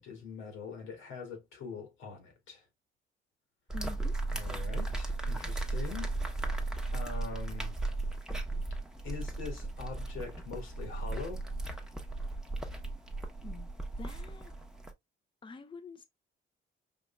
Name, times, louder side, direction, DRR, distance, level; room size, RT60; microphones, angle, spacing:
voice 1, 0.0-2.6 4.3-7.8 9.0-11.4, left 5 dB, 90° left, 2.0 m, -43 dB
voice 2, 3.7-4.2 13.4-13.7 14.0-14.5 15.4-16.0, left 4 dB, 25° left, 0.7 m, -46 dB
sound 1, 3.7-14.9, right 2 dB, 5° right, 0.9 m, -36 dB
5.1 x 2.8 x 2.2 m
cardioid pair, 90°, 20 cm